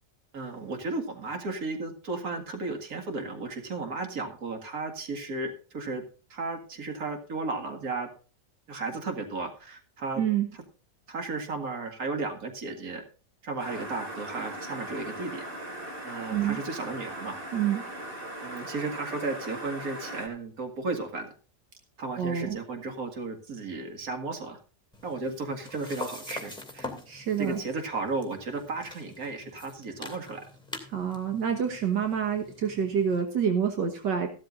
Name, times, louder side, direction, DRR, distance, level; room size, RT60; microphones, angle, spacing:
voice 1, 0.3-6.0 6.3-8.1 8.7-10.2 11.1-13.0 13.4-15.4 16.0-17.4 18.4-21.3 22.0-24.6 25.0-26.9 27.4-30.4, right 3 dB, 55° right, 4 dB, 2.4 m, -34 dB
voice 2, 10.2-10.5 16.3-16.6 17.5-17.9 22.2-22.6 27.1-27.6 30.9-34.3, right 8 dB, 75° right, 4 dB, 2.0 m, -27 dB
sound 1, 13.6-20.3, right 1 dB, 30° right, 2.4 m, -39 dB
sound 2, 24.9-33.2, left 2 dB, 5° left, 2.4 m, -44 dB
15.0 x 12.5 x 2.5 m, 0.37 s
omnidirectional pair, 1.9 m